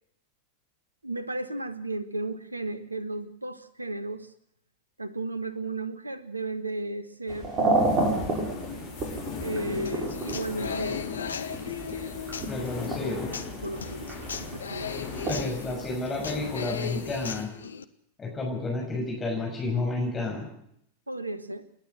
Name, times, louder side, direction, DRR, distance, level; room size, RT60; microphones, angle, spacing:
voice 1, 1.0-4.3 5.0-7.5 9.4-11.0 13.6-14.1 14.4-14.9 21.1-21.6, right 2 dB, 85° right, 15 dB, 1.3 m, -34 dB
sound 1, 7.3-15.4, right 2 dB, 30° right, 7.1 m, -31 dB
sound 2, 7.7-17.4, left 5 dB, 50° left, 5.2 m, -39 dB
Human voice / Acoustic guitar, 9.8-17.8, left 7 dB, 70° left, 1.0 m, -37 dB
voice 2, 12.5-13.3 15.3-17.5 18.2-20.4, left 2 dB, 20° left, -1 dB, 6.5 m, -31 dB
28.5 x 11.5 x 7.9 m, 0.71 s
figure-of-eight pair, 90°, 0 cm